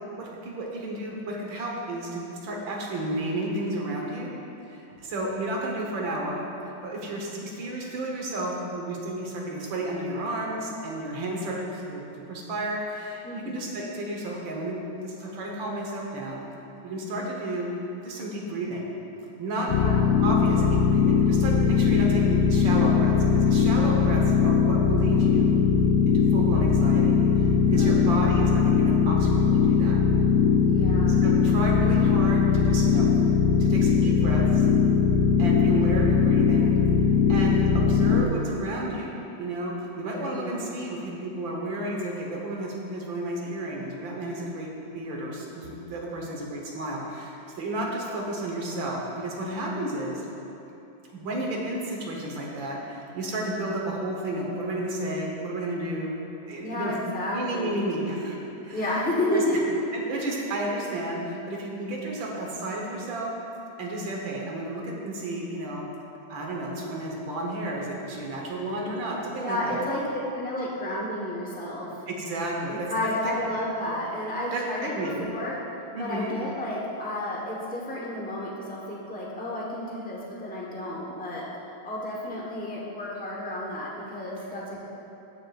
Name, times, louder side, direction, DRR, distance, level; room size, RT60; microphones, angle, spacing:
voice 1, 0.2-4.3 4.7-12.0 12.3-16.5 16.8-17.7 18.0-18.9 19.4-19.7 20.2-25.5 26.1-30.0 31.2-33.1 33.6-34.7 35.4-36.8 37.3-50.3 51.1-56.1 56.5-56.9 57.3-59.0 59.3-59.4 59.9-63.3 63.8-65.9 66.3-69.8 72.1-72.9 73.2-73.3 74.5-75.2 75.9-76.4, right 1 dB, 75° right, -2 dB, 1.8 m, -32 dB
voice 2, 13.2-13.6 19.6-21.0 27.8-28.3 30.7-31.2 35.7-35.8 40.3-40.7 56.6-57.9 58.7-59.7 69.4-70.0 70.3-72.0 72.6-75.6 76.0-81.4 81.8-84.9, left 1 dB, 5° left, -4 dB, 0.6 m, -31 dB
sound 1, 19.7-38.2, left 6 dB, 75° left, 1.1 m, -20 dB
14.5 x 6.5 x 2.4 m, 2.9 s
omnidirectional pair, 2.1 m